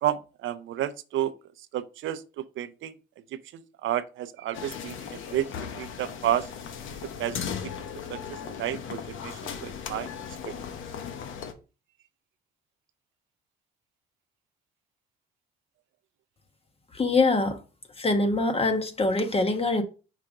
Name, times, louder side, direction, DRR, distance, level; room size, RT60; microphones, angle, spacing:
voice 1, 0.0-1.3 1.7-2.9 3.5-5.5 5.8-6.5 7.2-7.4 7.8-10.1 10.4-10.5, right 12 dB, 75° right, 0.6 m, -31 dB
sound 1, 4.5-11.5, left 7 dB, 80° left, 1.0 m, -37 dB
voice 2, 16.9-17.6 18.0-19.8, left 3 dB, 30° left, 1.3 m, -24 dB
5.6 x 5.1 x 3.6 m
cardioid pair, 90°, 20 cm